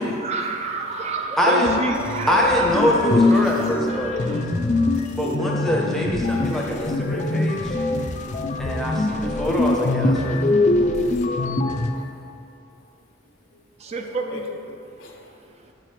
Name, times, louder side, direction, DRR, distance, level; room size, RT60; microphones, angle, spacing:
voice 1, 0.2-2.9 3.2-4.5 13.8-14.6, right 3 dB, 35° right, 4 dB, 0.4 m, -29 dB
voice 2, 1.4-1.7 2.3-4.1 5.1-7.7 8.6-10.4, equal, ahead, -3 dB, 0.6 m, -23 dB
sound 1, 1.6-11.9, left 2 dB, 40° left, 0.3 m, -23 dB
voice 3, 3.3-3.8 5.1-5.2 6.7-7.2 10.0-10.4 11.9-12.1 12.7-13.0 13.5-15.3, left 2 dB, 85° left, 1 dB, 0.7 m, -42 dB
7.6 x 3.0 x 4.9 m, 2.6 s
head